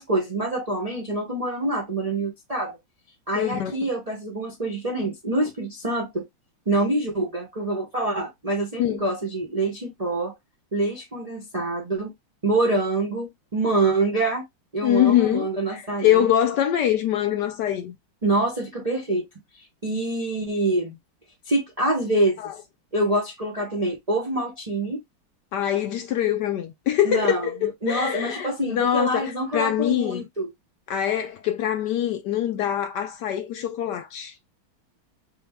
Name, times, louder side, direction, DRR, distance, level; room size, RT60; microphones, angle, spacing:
voice 1, 0.0-2.8 3.3-6.2 6.7-10.3 10.7-12.1 12.4-14.4 14.7-16.3 18.2-19.2 19.8-21.0 21.5-22.4 22.9-25.0 27.0-27.5 27.8-30.5, right 2 dB, 50° right, 0.4 m, -25 dB
voice 2, 3.3-3.9 8.8-9.0 14.8-18.0 22.4-22.5 25.5-30.3 30.9-34.3, left 11 dB, 70° left, 1.0 m, -24 dB
4.1 x 2.1 x 3.4 m
omnidirectional pair, 2.2 m